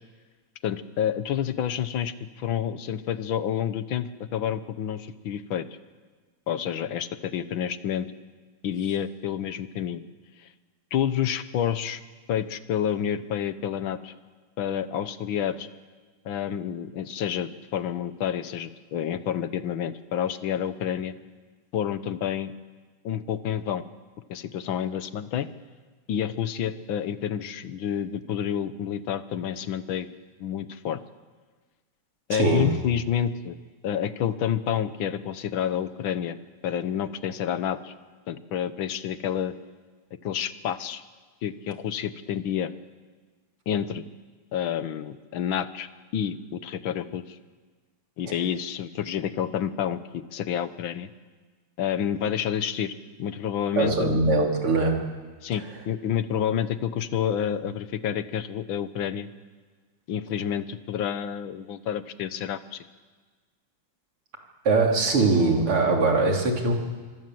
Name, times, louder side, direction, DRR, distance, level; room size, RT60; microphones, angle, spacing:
voice 1, 0.6-5.7 6.5-8.1 8.6-10.0 10.4-10.5 10.9-12.0 12.3-14.1 14.6-15.7 16.2-21.1 21.7-22.5 23.0-23.8 24.3-25.5 26.1-30.1 30.4-31.0 32.3-33.6 33.8-36.4 36.6-37.9 38.3-39.5 40.2-41.0 41.4-42.7 43.7-44.0 44.5-47.4 48.2-51.1 51.8-52.9 53.2-54.1 55.4-59.3 60.1-62.8, left 9 dB, 70° left, 12 dB, 1.7 m, -29 dB
voice 2, 32.3-32.7 48.3-48.4 53.8-54.9 64.6-66.8, right 3 dB, 85° right, 1 dB, 4.2 m, -22 dB
26.0 x 24.0 x 7.8 m, 1.4 s
omnidirectional pair, 2.4 m